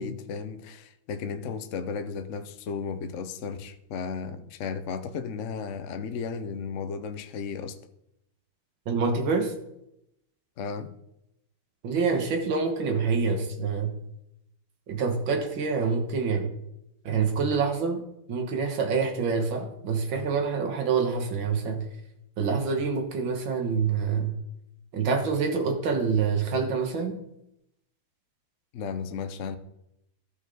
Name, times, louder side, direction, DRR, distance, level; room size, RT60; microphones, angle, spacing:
voice 1, 0.0-7.8 10.6-11.0 28.7-29.6, left 5 dB, 85° left, 0.6 m, -34 dB
voice 2, 8.9-9.5 11.8-13.9 14.9-16.5 17.1-18.0 18.3-21.8 22.4-24.3 24.9-27.2, right 5 dB, 70° right, 2.0 m, -26 dB
14.5 x 5.3 x 3.8 m
omnidirectional pair, 2.3 m